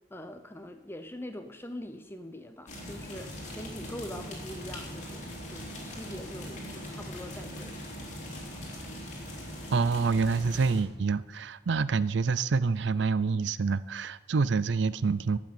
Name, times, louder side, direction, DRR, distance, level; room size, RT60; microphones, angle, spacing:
voice 1, 0.1-7.9, left 1 dB, 10° left, 7 dB, 0.8 m, -43 dB
sound 1, 2.7-10.8, equal, 40° left, 3.7 m, -41 dB
voice 2, 9.7-15.4, right 4 dB, 70° right, 18 dB, 0.5 m, -27 dB
12.5 x 7.6 x 9.4 m, 1.1 s
head